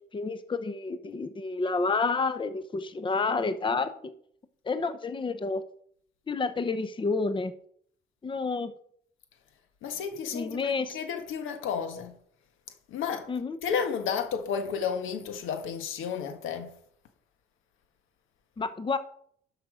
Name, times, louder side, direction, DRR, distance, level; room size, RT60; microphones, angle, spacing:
voice 1, 0.1-4.1 4.7-5.6 6.3-7.5 8.2-8.7 10.3-11.0 13.3-13.6 18.6-19.0, left 4 dB, 25° left, 0.8 m, -29 dB
voice 2, 9.8-12.1 12.9-13.3 13.6-16.7, left 7 dB, 85° left, 1.5 m, -32 dB
12.0 x 5.8 x 5.0 m
cardioid pair, 90°, 20 cm